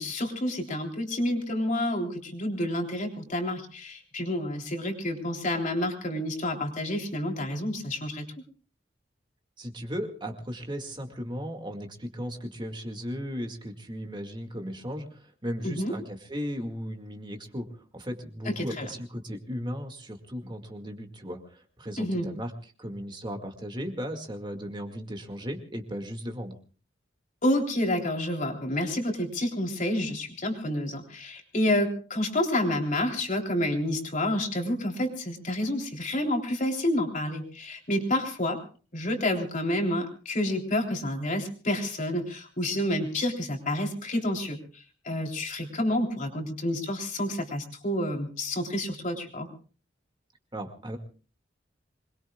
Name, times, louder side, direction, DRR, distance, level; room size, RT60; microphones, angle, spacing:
voice 1, 0.0-8.3 15.6-15.9 18.5-18.9 22.0-22.3 27.4-38.6 38.9-44.6 45.1-49.5, left 1 dB, 45° left, 2 dB, 3.5 m, -29 dB
voice 2, 9.6-26.6 50.5-51.0, equal, 25° right, 4 dB, 2.1 m, -36 dB
26.0 x 21.5 x 2.4 m, 0.39 s
head